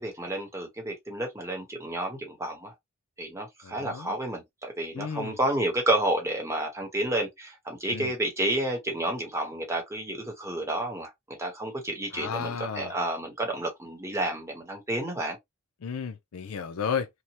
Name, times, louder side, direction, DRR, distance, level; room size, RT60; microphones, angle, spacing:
voice 1, 0.0-2.7 3.2-15.4, right 1 dB, 15° right, 0.9 m, -30 dB
voice 2, 3.6-4.1 4.9-5.4 7.9-8.1 12.1-12.9 15.8-17.1, left 6 dB, 80° left, 0.5 m, -33 dB
2.9 x 2.1 x 2.8 m
head